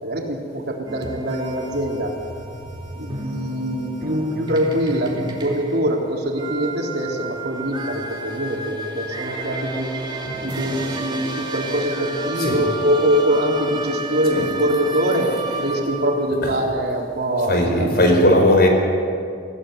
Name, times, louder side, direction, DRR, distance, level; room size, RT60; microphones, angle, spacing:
voice 1, 0.0-2.1 3.0-9.9 10.4-17.9, equal, 65° right, 0 dB, 3.8 m, -23 dB
sound 1, 0.9-16.3, right 2 dB, 25° right, 2.7 m, -31 dB
voice 2, 17.5-18.7, left 1 dB, 60° left, 3 dB, 4.9 m, -16 dB
24.0 x 16.5 x 9.4 m, 2.5 s
head